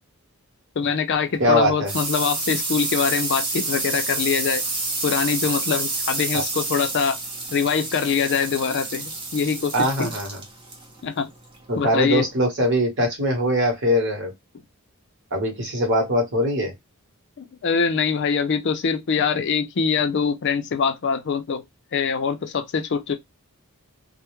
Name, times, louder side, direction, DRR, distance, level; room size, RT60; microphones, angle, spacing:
voice 1, 0.8-4.6 5.0-7.2 7.5-10.1 11.0-11.3 11.8-12.2 17.6-21.6 21.9-23.2, left 6 dB, 50° left, 0.4 m, -23 dB
sound 1, 1.1-12.4, right 3 dB, 20° right, 0.6 m, -29 dB
voice 2, 1.4-1.9 6.3-6.4 9.7-10.4 11.7-14.3 15.3-16.7, equal, 55° right, 1.0 m, -22 dB
2.2 x 2.1 x 2.9 m
head